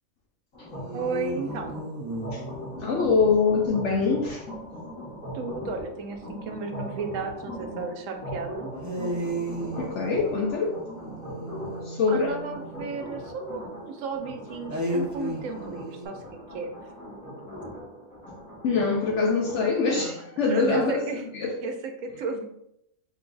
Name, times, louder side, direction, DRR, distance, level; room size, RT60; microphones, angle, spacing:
sound 1, 0.5-19.7, equal, 80° left, 1.9 m, -40 dB
sound 2, 0.7-3.5 8.8-13.2 14.7-16.1, right 1 dB, 20° right, 0.5 m, -35 dB
voice 1, 0.9-1.8 5.3-8.7 12.1-16.2 16.5-16.7 19.9-20.2 20.5-21.3 21.6-22.4, right 4 dB, 75° right, 4 dB, 1.0 m, -34 dB
voice 2, 2.8-4.4 9.8-10.8 11.8-12.3 18.6-21.0 21.3-21.6, left 4 dB, 65° left, 0 dB, 0.9 m, -24 dB
4.5 x 2.3 x 3.8 m, 0.77 s
omnidirectional pair, 1.4 m